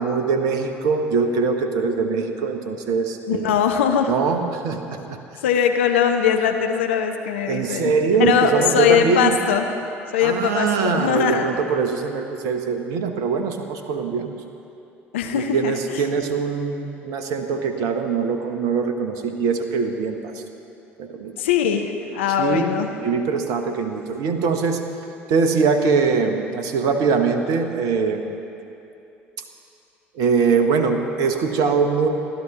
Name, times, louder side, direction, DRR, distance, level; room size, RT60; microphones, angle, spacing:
voice 1, 0.0-3.6 4.1-5.2 7.5-9.4 10.2-14.3 15.3-20.4 21.0-21.3 22.4-22.7 23.0-24.8 25.3-28.4 30.1-32.1, right 5 dB, 55° right, 7 dB, 1.1 m, -22 dB
voice 2, 3.3-4.1 5.4-7.9 8.2-9.7 10.1-11.5 15.1-16.0 21.4-22.9, left 8 dB, 70° left, 5 dB, 0.8 m, -21 dB
29.5 x 12.5 x 3.1 m, 2.8 s
figure-of-eight pair, 60°, 7 cm